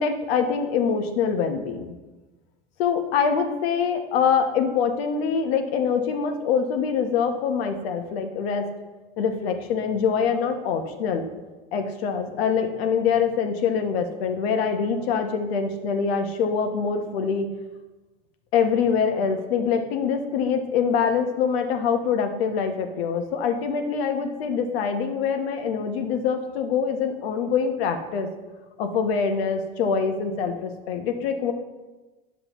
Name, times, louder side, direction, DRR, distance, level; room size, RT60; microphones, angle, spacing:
voice 1, 0.0-2.0 2.8-8.7 9.2-11.3 11.7-17.5 18.5-28.3 28.8-31.5, left 6 dB, 80° left, 6 dB, 1.1 m, -24 dB
10.0 x 7.4 x 3.0 m, 1.2 s
supercardioid pair, 125°, 30 cm